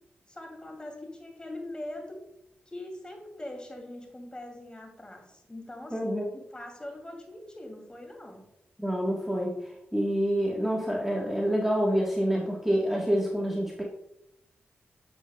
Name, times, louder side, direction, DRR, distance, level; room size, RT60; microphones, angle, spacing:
voice 1, 0.3-2.2 2.7-8.5, left 1 dB, 20° left, 2 dB, 2.6 m, -42 dB
voice 2, 5.9-6.2 8.8-9.6 9.9-13.8, equal, 5° right, -2 dB, 1.4 m, -27 dB
8.1 x 7.3 x 2.3 m, 0.85 s
supercardioid pair, 45°, 4 cm